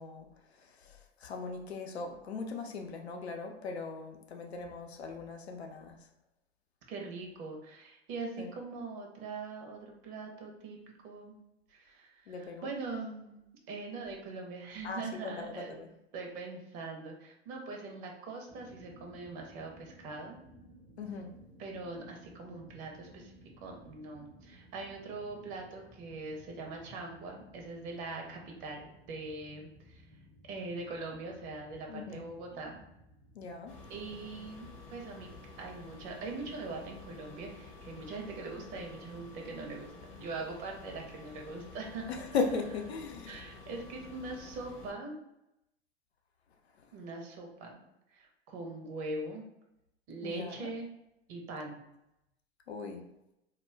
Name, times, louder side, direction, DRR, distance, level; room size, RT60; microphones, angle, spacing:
voice 1, 0.0-6.1 8.4-8.5 12.3-12.7 14.8-15.9 21.0-21.4 31.9-32.3 33.3-33.8 42.1-43.4 46.8-46.9 50.2-50.7 52.7-53.1, left 4 dB, 80° left, 4 dB, 0.5 m, -38 dB
voice 2, 6.9-10.8 11.0-11.4 11.7-13.4 13.7-15.8 16.1-20.4 21.6-23.3 23.6-30.0 30.5-32.8 33.9-35.3 35.6-42.1 43.3-45.1 46.9-47.8 48.1-49.4 50.1-50.9 51.3-51.8, right 3 dB, 40° right, 1 dB, 0.7 m, -42 dB
sound 1, 18.5-35.7, equal, 5° right, 0.5 m, -58 dB
sound 2, 33.7-44.9, left 3 dB, 40° left, 0.7 m, -51 dB
2.3 x 2.1 x 3.2 m, 0.85 s
figure-of-eight pair, 90°, 32 cm